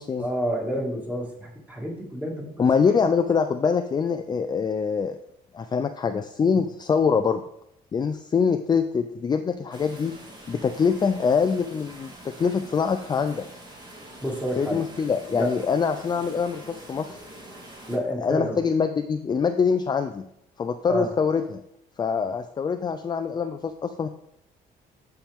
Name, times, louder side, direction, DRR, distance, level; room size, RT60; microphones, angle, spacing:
voice 1, 0.2-2.5 6.5-6.6 14.2-14.8 15.3-15.5 17.9-18.6 20.9-21.1, equal, 10° right, -1 dB, 2.2 m, -29 dB
voice 2, 2.6-5.2 5.5-7.4 7.9-10.1 10.5-13.5 14.6-17.1 18.2-20.2 20.6-21.6 22.0-24.1, left 6 dB, 25° left, 7 dB, 0.4 m, -24 dB
sound 1, 9.7-18.0, right 1 dB, 25° right, 2.0 m, -45 dB
12.5 x 4.6 x 3.6 m, 0.77 s
cardioid pair, 110°, 17 cm